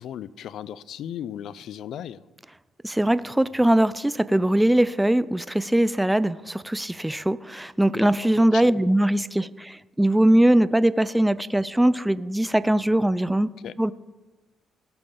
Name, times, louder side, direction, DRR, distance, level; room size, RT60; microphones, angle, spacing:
voice 1, 0.0-2.2 7.9-8.1 8.4-8.8 13.6-13.7, left 10 dB, 75° left, 19 dB, 0.4 m, -36 dB
voice 2, 2.8-13.5 13.8-13.9, right 1 dB, 5° right, 16 dB, 0.3 m, -21 dB
17.5 x 6.8 x 3.8 m, 1.2 s
cardioid pair, 90°, 0 cm